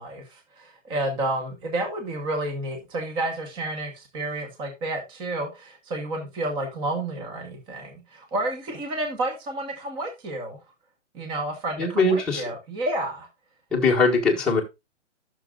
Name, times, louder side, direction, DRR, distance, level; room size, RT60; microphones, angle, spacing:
voice 1, 0.0-10.6 11.1-13.3, right 2 dB, 15° right, 5 dB, 1.2 m, -30 dB
voice 2, 11.8-12.4 13.7-14.6, left 3 dB, ahead, -4 dB, 1.5 m, -21 dB
14.0 x 6.5 x 2.4 m, 0.24 s
hypercardioid pair, 160°, 37 cm